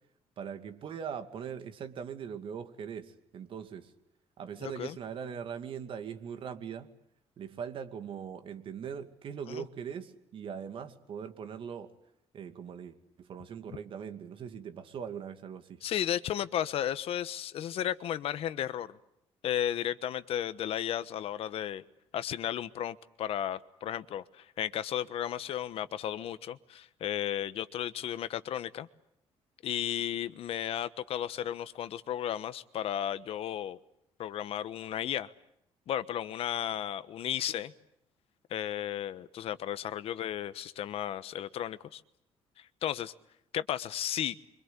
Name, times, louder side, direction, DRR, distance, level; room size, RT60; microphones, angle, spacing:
voice 1, 0.4-3.9 4.4-6.9 7.4-11.9 12.3-15.8, right 7 dB, 50° right, 8 dB, 2.4 m, -41 dB
voice 2, 4.6-5.0 9.5-9.6 15.8-19.0 19.4-21.8 22.1-28.9 29.6-33.8 34.2-35.3 35.9-37.7 38.5-42.0 42.6-43.1 43.5-44.4, left 10 dB, 60° left, 14 dB, 1.2 m, -34 dB
27.5 x 25.0 x 8.3 m, 0.77 s
cardioid pair, 145°, 11 cm